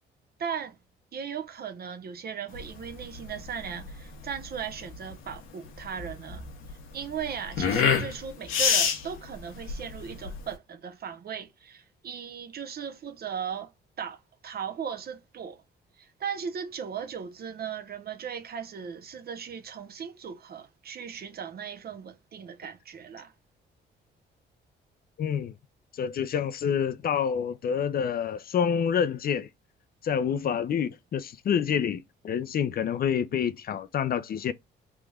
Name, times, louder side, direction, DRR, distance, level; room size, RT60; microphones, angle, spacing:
voice 1, 0.4-0.8 1.1-6.4 6.7-13.7 14.0-15.6 16.0-23.3, right 7 dB, 50° right, 0.8 m, -37 dB
sound 1, 2.5-10.5, left 6 dB, 85° left, 0.9 m, -28 dB
voice 2, 25.2-25.5 25.9-29.5 30.0-34.5, left 8 dB, 50° left, 0.5 m, -27 dB
3.5 x 3.1 x 2.3 m
cardioid pair, 90°, 20 cm